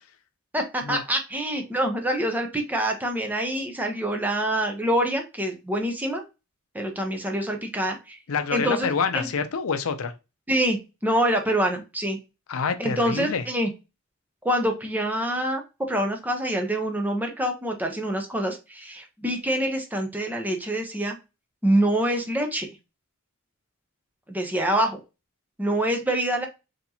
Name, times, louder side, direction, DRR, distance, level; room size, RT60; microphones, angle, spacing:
voice 1, 0.5-6.2 6.7-8.2 8.5-8.9 9.1-9.3 10.5-12.2 12.8-13.7 14.4-15.6 15.9-21.2 21.6-22.7 24.3-25.0 25.6-26.5, right 1 dB, 10° right, 0.7 m, -25 dB
voice 2, 8.3-10.1 12.5-13.4, left 5 dB, 90° left, 0.5 m, -27 dB
4.2 x 2.9 x 2.7 m
head